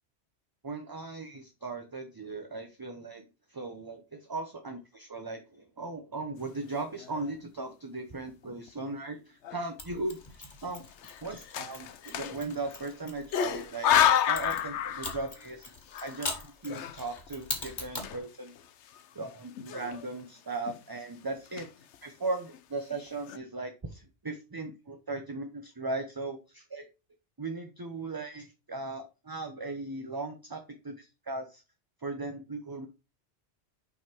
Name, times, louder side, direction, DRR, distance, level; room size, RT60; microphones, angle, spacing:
voice 1, 0.6-10.8 11.2-15.7 16.0-18.5 19.1-21.7 22.0-26.8 27.4-31.6 32.0-32.9, right 3 dB, 25° right, 6 dB, 0.7 m, -38 dB
sound 1, 6.9-7.4 7.9-8.0 8.3-9.0 9.4-9.6 10.6-12.9 13.3-15.5 15.8-18.6 18.9-19.0 19.6-20.3 20.6-21.0 21.4-22.0 22.5-22.6 22.9-23.4, left 9 dB, 90° left, 1.0 m, -31 dB
Mechanisms, 9.8-13.6 14.3-18.2, left 2 dB, 45° left, 1.8 m, -41 dB
5.8 x 5.4 x 4.5 m, 0.29 s
omnidirectional pair, 1.1 m